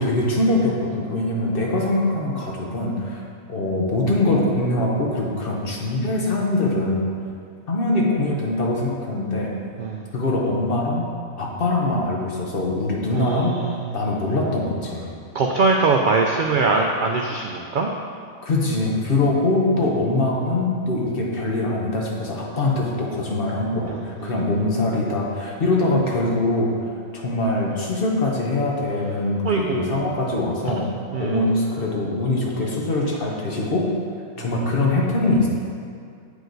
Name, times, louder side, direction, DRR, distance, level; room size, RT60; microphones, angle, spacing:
voice 1, 0.0-3.2 3.5-7.1 7.7-9.5 10.1-11.1 11.4-13.5 13.9-15.1 18.4-26.7 27.1-30.9 31.2-33.9 34.4-35.5, left 2 dB, 45° left, -2 dB, 1.1 m, -23 dB
voice 2, 13.1-13.9 15.3-17.9 19.8-19.9 23.9-24.3 29.4-30.1 30.7-30.8 31.1-31.4, right 4 dB, 70° right, 1 dB, 0.4 m, -22 dB
7.8 x 4.9 x 3.9 m, 2.3 s
omnidirectional pair, 1.4 m